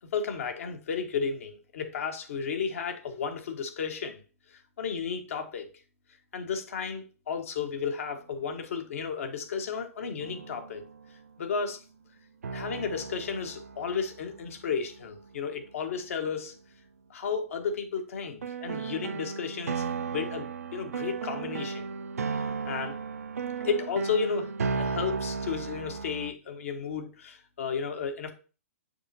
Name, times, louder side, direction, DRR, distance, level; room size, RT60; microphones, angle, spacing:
voice 1, 0.1-4.2 4.5-5.7 6.3-10.8 11.4-11.8 12.5-16.5 17.1-19.8 20.1-20.5 20.7-21.8 22.3-23.0 23.6-28.3, left 6 dB, 65° left, 5 dB, 1.4 m, -33 dB
sound 1, 8.1-8.2 10.2-11.2 12.4-15.7 18.4-26.3, right 5 dB, 75° right, 0.5 m, -35 dB
6.7 x 5.2 x 2.8 m, 0.34 s
figure-of-eight pair, 120°, 8 cm